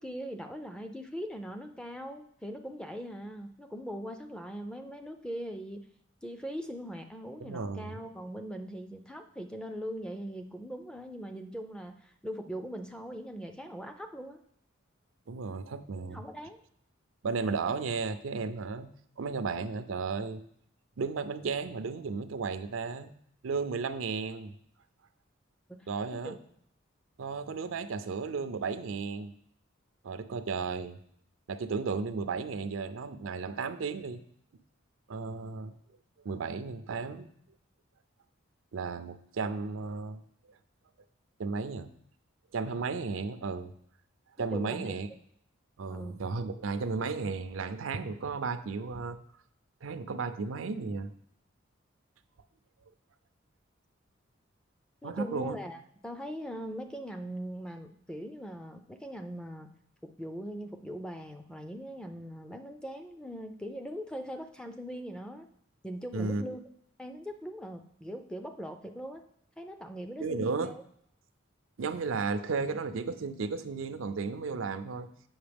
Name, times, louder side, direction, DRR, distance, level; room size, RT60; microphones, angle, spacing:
voice 1, 0.0-5.9 6.2-14.4 16.1-16.6 25.7-25.9 26.2-26.4 44.4-44.9 45.9-46.2 55.0-59.7 60.0-65.5 65.8-66.6 67.0-69.2 69.6-70.8, equal, 5° left, 6 dB, 0.4 m, -41 dB
voice 2, 7.4-8.0 15.3-16.2 17.2-18.9 19.2-20.4 21.0-23.1 23.4-24.5 25.9-26.4 27.2-29.3 30.0-31.0 31.5-34.2 35.1-35.7 36.2-37.3 38.7-40.2 41.4-41.9 42.5-43.7 44.4-45.1 45.8-49.2 49.8-51.1 55.0-55.6 66.1-66.4 70.2-70.7 71.8-75.1, right 4 dB, 80° right, 11 dB, 0.5 m, -34 dB
8.0 x 5.6 x 3.4 m, 0.67 s
head